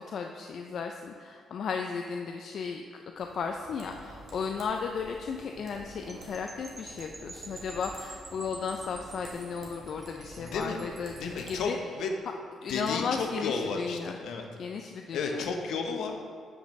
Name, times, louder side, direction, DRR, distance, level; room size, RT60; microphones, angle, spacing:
voice 1, 0.1-2.8 3.2-11.8 12.6-14.2 14.6-15.5, left 5 dB, 60° left, 3 dB, 0.3 m, -35 dB
sound 1, 3.2-11.6, right 2 dB, 55° right, 1.4 m, -49 dB
sound 2, 6.1-11.4, right 3 dB, 25° right, 0.5 m, -48 dB
voice 2, 10.4-10.8 11.2-12.1 12.7-14.5 15.1-16.1, left 4 dB, 75° left, 4 dB, 0.7 m, -32 dB
7.8 x 5.1 x 3.1 m, 2.2 s
cardioid pair, 90°, 0 cm